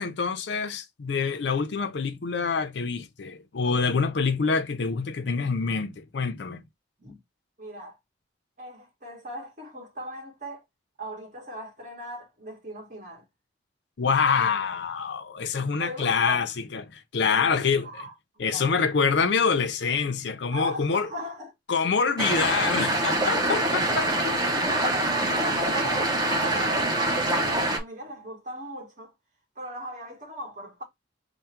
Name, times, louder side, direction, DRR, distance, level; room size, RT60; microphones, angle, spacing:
voice 1, 0.0-6.6 14.0-17.9 18.4-21.1 21.7-24.1, left 5 dB, 70° left, 0.5 m, -26 dB
voice 2, 7.6-8.0 8.6-10.6 11.0-13.2 15.8-16.4 17.3-18.8 20.5-21.5 24.2-29.1 29.5-30.8, right 1 dB, 45° right, 1.7 m, -38 dB
sound 1, 22.2-27.8, right 1 dB, 20° right, 0.8 m, -25 dB
3.6 x 2.1 x 4.4 m
head